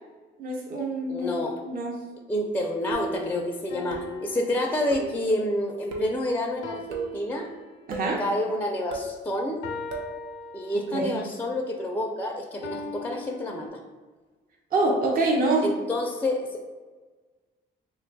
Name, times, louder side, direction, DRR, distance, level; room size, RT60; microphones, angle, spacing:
voice 1, 0.4-2.0 7.9-8.2 10.9-11.1 14.7-15.7, right 2 dB, 45° right, 0 dB, 0.6 m, -26 dB
voice 2, 1.1-1.6 2.3-7.5 8.2-9.6 10.5-13.8 15.6-16.6, left 1 dB, 10° left, 2 dB, 0.4 m, -28 dB
sound 1, 2.9-3.3 3.9-4.3 4.9-5.2 5.9-6.2 6.9-7.2 7.9-8.2 8.9-9.2 9.9-10.2, right 3 dB, 85° right, 0.6 m, -35 dB
sound 2, 3.7-5.5 6.6-8.1 9.6-11.2 12.6-13.7, left 3 dB, 75° left, 0.5 m, -41 dB
2.9 x 2.2 x 3.8 m, 1.4 s
cardioid pair, 80°, 21 cm